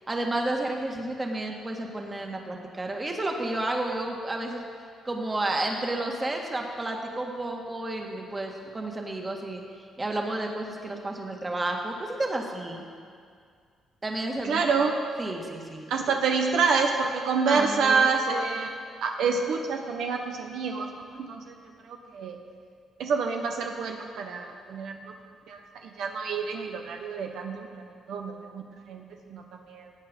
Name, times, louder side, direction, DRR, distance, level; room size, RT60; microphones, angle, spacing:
voice 1, 0.1-4.7 5.1-9.6 10.0-12.9 14.0-14.7 15.2-15.9 17.5-18.1, right 2 dB, 25° right, 1 dB, 1.9 m, -31 dB
voice 2, 14.4-14.9 15.9-18.7 19.0-20.9 21.1-21.5 21.8-22.3 23.0-25.1 25.5-27.7 28.1-29.0 29.3-29.4 29.7-29.9, right 5 dB, 75° right, 3 dB, 1.0 m, -27 dB
17.5 x 8.8 x 5.3 m, 2.2 s
cardioid pair, 90°, 0 cm